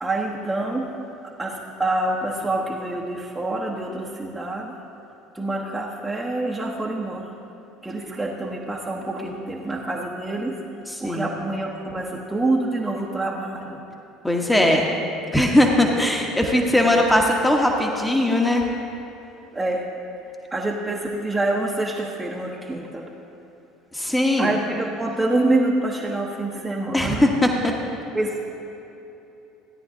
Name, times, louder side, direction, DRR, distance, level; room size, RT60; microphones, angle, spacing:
voice 1, 0.0-1.0 1.4-4.8 5.3-7.3 7.8-10.6 11.0-13.8 16.8-17.1 19.5-19.9 20.5-23.1 24.4-27.2 28.1-28.4, right 2 dB, 15° right, -2 dB, 1.0 m, -26 dB
voice 2, 10.9-11.3 14.2-14.9 15.3-18.6 23.9-24.5 26.9-27.7, left 1 dB, 10° left, 1 dB, 1.2 m, -19 dB
16.0 x 9.6 x 2.7 m, 3.0 s
hypercardioid pair, 70°, 0 cm